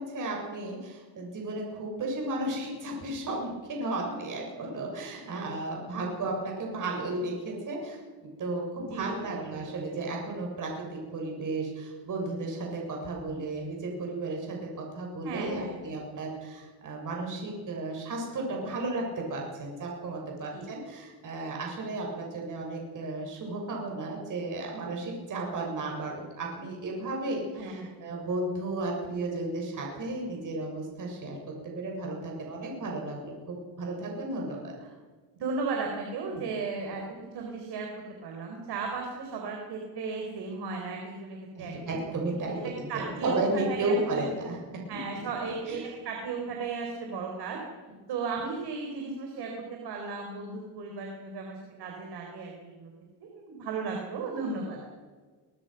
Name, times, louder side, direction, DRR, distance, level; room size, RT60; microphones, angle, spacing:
voice 1, 0.0-31.4 31.6-34.6 36.3-36.4 41.6-44.6 45.1-45.3 45.7-45.8 47.9-48.0, right 2 dB, 50° right, 0 dB, 7.1 m, -34 dB
voice 2, 8.9-9.6 15.2-15.9 20.5-20.7 27.5-27.9 35.4-37.0 37.3-37.9 38.2-41.7 42.1-42.2 42.6-44.3 44.9-47.6 48.1-52.9 53.2-54.8, right 4 dB, 70° right, 1 dB, 4.7 m, -35 dB
22.0 x 21.0 x 6.1 m, 1.4 s
cardioid pair, 130°, 40 cm